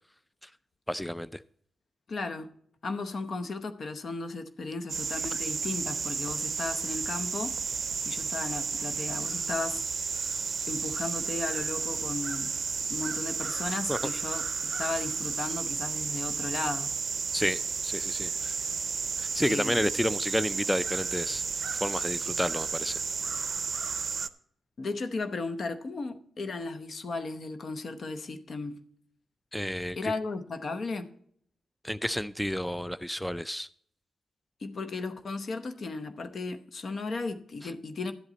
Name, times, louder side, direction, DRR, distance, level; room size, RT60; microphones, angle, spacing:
voice 1, 0.9-1.4 13.9-14.0 17.3-18.6 19.2-21.4 21.8-23.0 29.5-30.1 31.8-33.7, equal, 5° left, 0.3 m, -31 dB
voice 2, 2.1-10.4 10.7-12.6 12.9-17.0 19.4-19.8 24.8-28.8 30.0-31.1 34.6-38.1, left 3 dB, 60° left, 0.8 m, -35 dB
sound 1, 4.9-24.3, right 5 dB, 55° right, 0.5 m, -32 dB
12.0 x 8.0 x 4.1 m
supercardioid pair, 50°, 0 cm